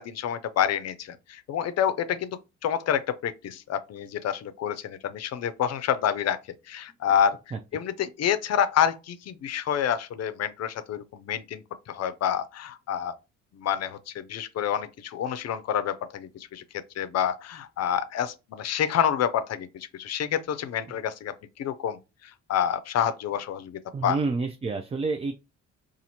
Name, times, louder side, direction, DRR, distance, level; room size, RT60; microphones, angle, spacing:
voice 1, 0.0-6.4 6.7-7.4 7.7-13.1 13.5-16.6 17.0-22.0 22.5-24.2, left 9 dB, 60° left, 0.5 m, -28 dB
voice 2, 23.9-25.4, right 3 dB, 20° right, 0.4 m, -28 dB
4.1 x 2.5 x 2.8 m
cardioid pair, 90°, 30 cm